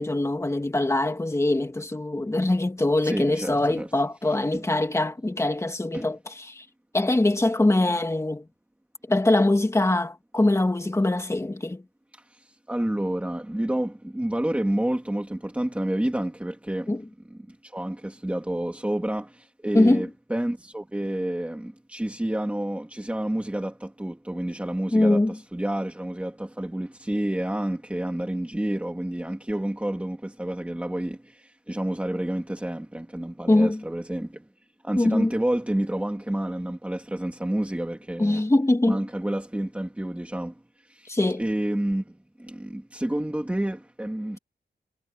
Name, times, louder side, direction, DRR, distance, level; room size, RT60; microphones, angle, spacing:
voice 1, 0.0-6.7 6.9-8.5 9.1-11.8 16.9-17.0 19.7-20.1 24.9-25.4 33.5-33.8 35.0-35.3 38.2-39.0 41.1-41.4, left 2 dB, 15° left, 1.9 m, -23 dB
voice 2, 3.0-3.9 4.5-4.6 5.9-6.1 12.1-17.0 17.3-34.5 34.8-38.4 38.9-41.1 41.4-44.4, right 1 dB, 10° right, 1.9 m, -29 dB
wide cardioid pair, 155°, 17 cm